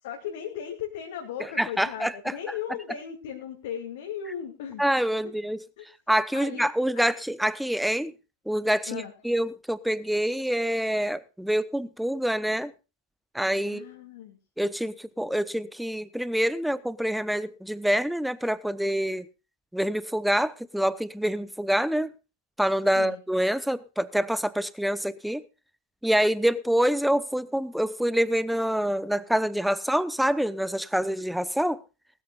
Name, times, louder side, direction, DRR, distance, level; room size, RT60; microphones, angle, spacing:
voice 1, 0.0-4.8 5.2-5.4 5.8-5.9 6.3-6.7 8.9-9.1 13.6-14.4 22.9-23.2, left 9 dB, 55° left, 2.7 m, -37 dB
voice 2, 1.6-2.3 4.8-5.6 6.1-8.1 8.5-12.7 13.3-13.9 14.6-19.3 19.7-22.1 22.6-25.4 26.0-31.8, equal, ahead, 0.8 m, -26 dB
20.0 x 13.5 x 2.4 m
figure-of-eight pair, 90°, 0 cm